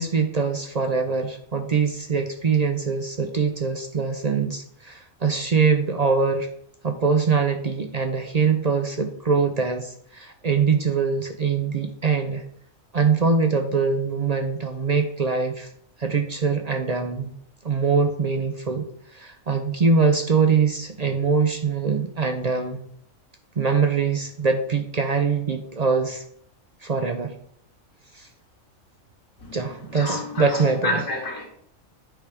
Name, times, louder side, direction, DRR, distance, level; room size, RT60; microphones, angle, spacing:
voice 1, 0.0-6.5 6.8-12.4 12.9-15.7 16.0-17.3 17.6-18.9 19.1-22.8 23.6-26.2 26.8-27.3 28.1-28.3 29.5-31.0, right 5 dB, 50° right, 5 dB, 0.5 m, -23 dB
voice 2, 29.9-31.5, left 2 dB, 60° left, -3 dB, 2.4 m, -29 dB
9.0 x 3.5 x 5.1 m, 0.66 s
omnidirectional pair, 1.4 m